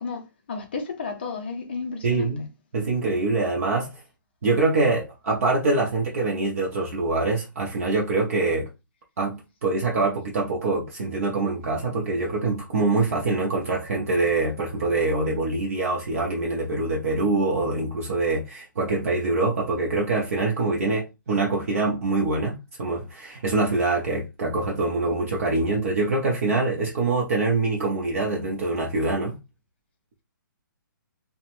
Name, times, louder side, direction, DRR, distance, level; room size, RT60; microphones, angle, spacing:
voice 1, 0.0-2.3, left 4 dB, 30° left, 0.4 m, -33 dB
voice 2, 2.0-3.9 4.4-8.7 9.2-29.4, right 3 dB, 40° right, 0.6 m, -24 dB
2.8 x 2.1 x 2.9 m
hypercardioid pair, 175°, 11 cm